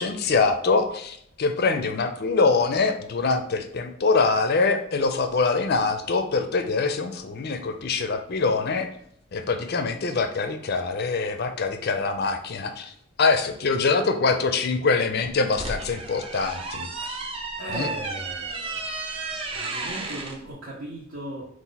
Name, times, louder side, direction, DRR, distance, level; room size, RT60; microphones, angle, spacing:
voice 1, 0.0-8.9 9.3-12.9 13.2-16.9 17.7-17.9, left 4 dB, 50° left, 7 dB, 0.5 m, -24 dB
sound 1, 15.3-20.4, right 3 dB, 25° right, 0.5 m, -33 dB
voice 2, 17.6-18.9 19.3-21.4, right 1 dB, 65° right, -6 dB, 0.9 m, -37 dB
4.1 x 2.5 x 3.9 m, 0.68 s
head